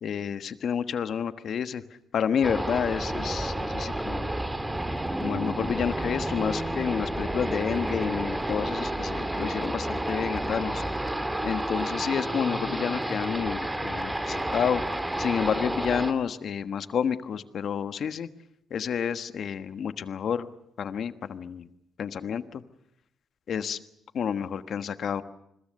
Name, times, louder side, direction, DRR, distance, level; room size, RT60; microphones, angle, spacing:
voice 1, 0.0-1.8 2.1-4.3 5.2-10.8 11.4-18.3 18.7-20.5 20.8-21.7 22.0-22.6 23.5-23.8 24.1-25.2, left 7 dB, 60° left, 11 dB, 1.4 m, -30 dB
sound 1, 2.4-16.1, right 1 dB, 10° right, 2.3 m, -30 dB
28.5 x 21.5 x 6.7 m, 0.79 s
cardioid pair, 90°, 0 cm